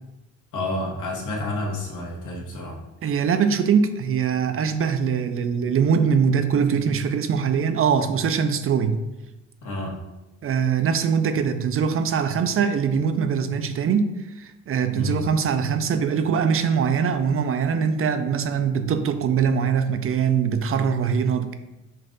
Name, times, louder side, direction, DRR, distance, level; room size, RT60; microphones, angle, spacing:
voice 1, 0.5-2.8 9.6-10.0 14.9-15.2, left 2 dB, 80° left, -2 dB, 1.4 m, -29 dB
voice 2, 3.0-9.0 10.4-21.5, right 6 dB, 45° right, 9 dB, 0.5 m, -22 dB
5.4 x 2.6 x 3.8 m, 1.0 s
cardioid pair, 90°, 30 cm